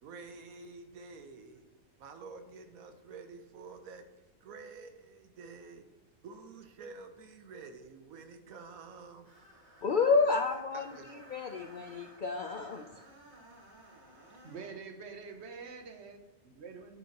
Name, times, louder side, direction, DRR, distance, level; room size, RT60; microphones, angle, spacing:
voice 1, 0.0-1.6 2.0-4.1 4.4-5.9 6.2-9.3 10.7-11.2, right 4 dB, 90° right, 7 dB, 1.2 m, -49 dB
Screech, 9.2-14.8, right 1 dB, 35° right, 1.7 m, -55 dB
voice 2, 9.8-10.9 11.3-12.8, left 4 dB, 65° left, 5 dB, 0.4 m, -29 dB
voice 3, 14.4-17.0, right 5 dB, 55° right, 7 dB, 1.0 m, -46 dB
10.0 x 6.8 x 2.9 m, 1.1 s
omnidirectional pair, 1.4 m